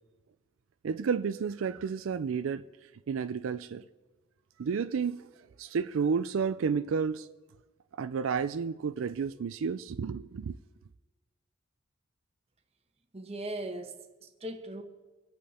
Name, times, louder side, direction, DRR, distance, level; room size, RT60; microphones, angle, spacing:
voice 1, 0.8-3.8 4.6-5.2 5.6-7.3 8.0-10.6, right 6 dB, 75° right, 0.4 m, -31 dB
voice 2, 13.1-14.8, right 1 dB, 30° right, 1.2 m, -39 dB
25.0 x 8.5 x 4.2 m
head